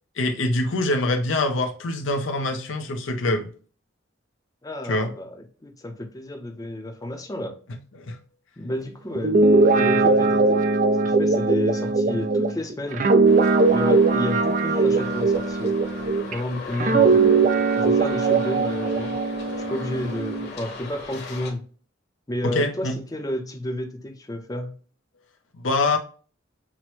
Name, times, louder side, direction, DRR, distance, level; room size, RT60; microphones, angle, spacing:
voice 1, 0.2-3.5 4.9-5.1 7.9-8.2 22.4-23.0 25.6-26.0, left 2 dB, 70° left, 0.7 m, -24 dB
voice 2, 4.6-7.5 8.6-9.4 9.8-10.6 11.0-13.1 13.7-15.7 16.3-17.4 17.7-19.2 19.6-21.6 22.3-24.7, left 1 dB, 20° left, 0.6 m, -31 dB
Guitar, 9.1-16.3 16.8-20.5, right 3 dB, 40° right, 0.4 m, -20 dB
Traffic noise roadway noise, 13.3-21.5, left 4 dB, 55° left, 1.1 m, -37 dB
5.9 x 2.1 x 3.0 m
head